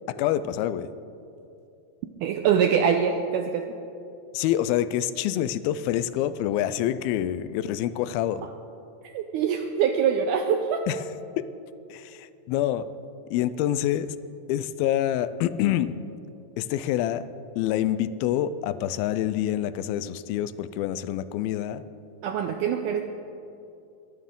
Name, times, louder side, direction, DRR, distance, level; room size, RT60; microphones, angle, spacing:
voice 1, 0.1-0.9 4.3-8.5 10.9-11.0 11.4-11.5 11.9-12.9 13.3-14.2 14.5-16.0 16.6-17.3 17.6-21.8, left 12 dB, 85° left, 14 dB, 2.4 m, -26 dB
voice 2, 2.2-3.7 9.0-10.9 22.2-23.0, right 7 dB, 85° right, 5 dB, 1.8 m, -24 dB
22.0 x 11.5 x 3.7 m, 2.7 s
omnidirectional pair, 4.2 m